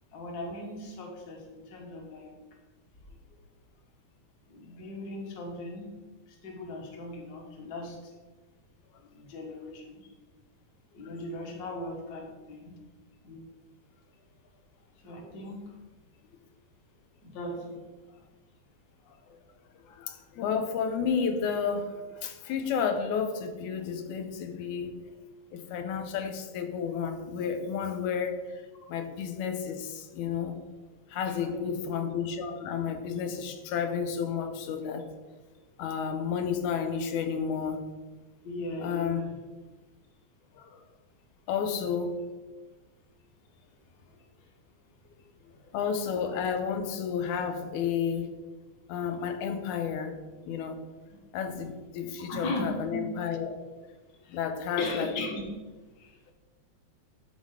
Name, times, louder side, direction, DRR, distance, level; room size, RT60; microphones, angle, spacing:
voice 1, 0.1-2.3 4.5-5.9 6.4-8.0 9.1-10.0 10.9-12.8 13.2-13.4 15.0-15.6 17.2-17.8 28.8-28.9 31.4-31.8 38.4-39.4 51.4-51.6 52.3-53.0 54.2-54.4 54.8-55.4 56.0-56.1, left 1 dB, 40° left, 0 dB, 1.6 m, -38 dB
voice 2, 19.9-25.0 25.5-28.6 28.9-30.6 31.1-35.1 35.8-37.8 38.8-39.2 40.6-40.9 41.5-42.2 45.7-48.3 48.9-50.1 50.5-50.8 51.3-53.5 54.3-55.1, left 6 dB, 90° left, 7 dB, 2.3 m, -31 dB
11.5 x 4.1 x 4.8 m, 1.3 s
omnidirectional pair, 3.4 m